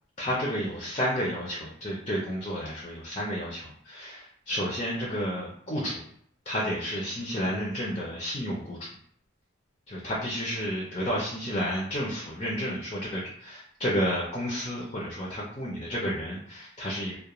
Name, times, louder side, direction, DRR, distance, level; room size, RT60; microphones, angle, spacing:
voice 1, 0.2-6.1 6.5-8.9 9.9-17.1, equal, 25° left, -4 dB, 0.4 m, -31 dB
2.3 x 2.1 x 2.9 m, 0.67 s
head